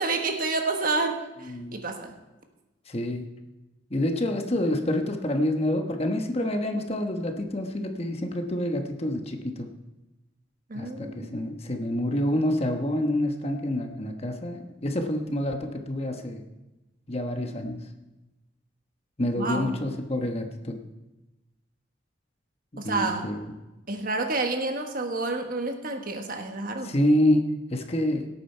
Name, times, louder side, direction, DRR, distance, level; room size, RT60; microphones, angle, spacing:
voice 1, 0.0-2.1 10.7-11.3 19.3-19.8 22.8-23.3 23.9-26.9, right 3 dB, 45° right, 5 dB, 1.3 m, -29 dB
voice 2, 2.9-3.3 3.9-9.7 10.7-16.4 17.1-17.8 19.2-20.8 22.7-23.5 26.8-28.3, left 1 dB, 30° left, 4 dB, 1.1 m, -27 dB
17.5 x 8.8 x 4.5 m, 1.1 s
head